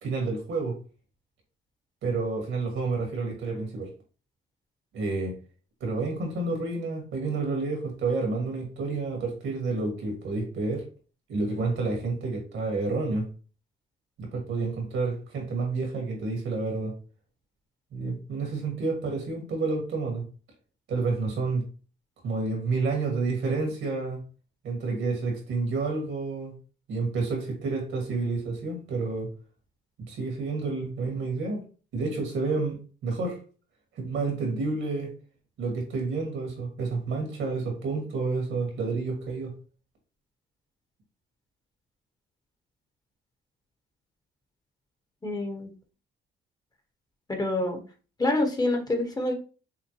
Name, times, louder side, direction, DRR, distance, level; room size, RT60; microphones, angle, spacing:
voice 1, 0.0-0.8 2.0-3.9 4.9-5.3 5.8-10.8 11.3-13.3 14.2-17.0 17.9-20.3 20.9-21.6 22.2-24.2 24.6-26.5 26.9-29.3 30.0-31.6 31.9-33.4 34.0-35.1 35.6-39.5, right 3 dB, 75° right, 1 dB, 1.9 m, -29 dB
voice 2, 45.2-45.7 47.3-47.8 48.2-49.3, left 2 dB, 20° left, 4 dB, 1.0 m, -26 dB
5.7 x 2.1 x 3.0 m, 0.36 s
cardioid pair, 90°, 20 cm